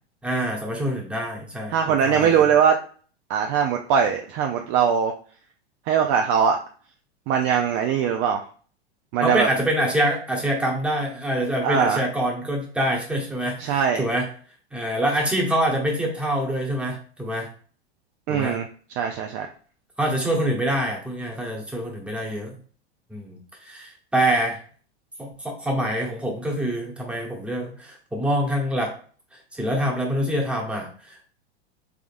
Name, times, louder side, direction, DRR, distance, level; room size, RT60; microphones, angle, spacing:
voice 1, 0.2-1.8 2.0-2.5 9.2-14.3 14.7-17.5 18.3-18.6 20.0-22.5 23.1-23.4 23.7-24.6 25.2-28.9 29.3-31.3, right 1 dB, 5° right, -1 dB, 1.0 m, -25 dB
voice 2, 1.7-2.8 3.3-5.1 5.9-6.6 7.3-8.4 9.1-9.5 11.6-12.0 13.6-14.1 18.3-18.7 19.0-19.5, right 7 dB, 40° right, 4 dB, 0.4 m, -21 dB
3.5 x 3.5 x 2.5 m, 0.43 s
hypercardioid pair, 110°, 33 cm